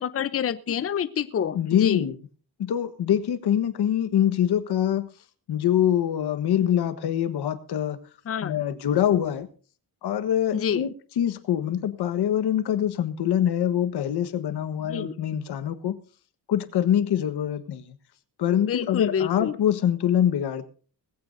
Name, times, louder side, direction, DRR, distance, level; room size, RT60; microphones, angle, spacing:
voice 1, 0.0-2.1 8.3-8.6 10.5-10.9 14.8-15.1 18.6-19.6, left 8 dB, 35° left, 13 dB, 0.7 m, -28 dB
voice 2, 1.5-2.1 2.6-5.1 5.5-8.0 8.4-9.5 10.0-10.9 11.2-16.0 16.5-17.8 18.4-20.7, left 10 dB, 80° left, 11 dB, 1.4 m, -24 dB
19.0 x 15.5 x 2.7 m, 0.39 s
cardioid pair, 130°, 39 cm